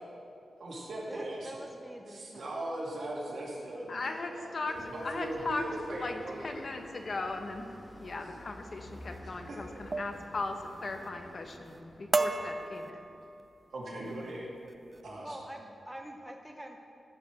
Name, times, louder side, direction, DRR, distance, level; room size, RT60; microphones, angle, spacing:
voice 1, 0.6-1.6 2.1-6.6 9.5-9.6 13.7-14.5 15.0-15.4, right 1 dB, 65° right, -5 dB, 2.7 m, -39 dB
voice 2, 1.1-2.7 14.2-14.3 15.2-16.8, right 1 dB, 5° right, 2 dB, 0.7 m, -45 dB
voice 3, 3.9-5.6 5.9-7.7 8.0-13.0, left 3 dB, 45° left, 5 dB, 0.9 m, -38 dB
sound 1, 4.7-13.1, left 1 dB, 15° left, 1.3 m, -51 dB
sound 2, 8.9-9.2 9.9-10.3 10.6-11.1 11.5-11.8 12.1-13.5 14.1-14.3 14.7-15.0, right 3 dB, 30° right, 0.4 m, -34 dB
14.5 x 5.0 x 6.5 m, 2.6 s
wide cardioid pair, 120°, 0 cm